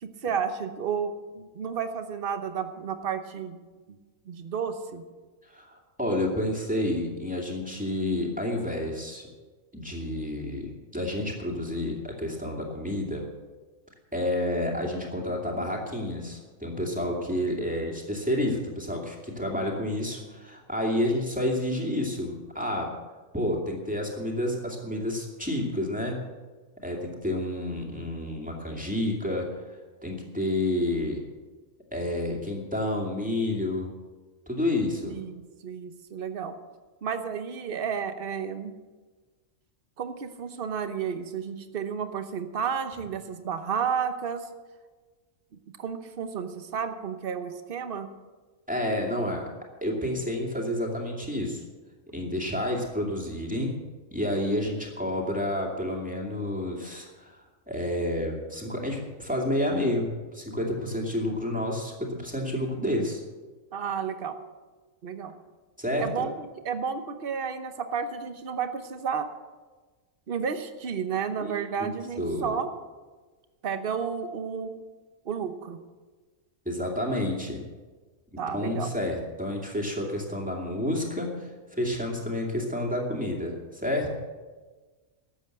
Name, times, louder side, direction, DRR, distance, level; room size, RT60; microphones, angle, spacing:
voice 1, 0.0-3.6 3.9-4.0 4.2-5.0 35.0-36.5 37.0-38.8 40.0-44.5 45.8-48.1 63.7-64.4 65.0-65.3 66.0-69.3 70.3-72.7 73.6-74.7 75.2-75.8 78.4-78.9, right 6 dB, 45° right, 9 dB, 1.1 m, -32 dB
voice 2, 5.5-9.3 9.7-13.2 14.1-22.9 23.3-26.2 26.8-29.5 30.0-31.3 31.9-33.9 34.5-35.2 48.7-49.4 49.8-51.6 52.1-53.7 54.1-57.4 57.7-63.2 65.8-66.3 71.4-71.6 72.2-72.6 76.7-77.6 78.3-84.1, left 1 dB, 5° right, -1 dB, 2.4 m, -29 dB
13.0 x 8.0 x 7.9 m, 1.3 s
omnidirectional pair, 1.4 m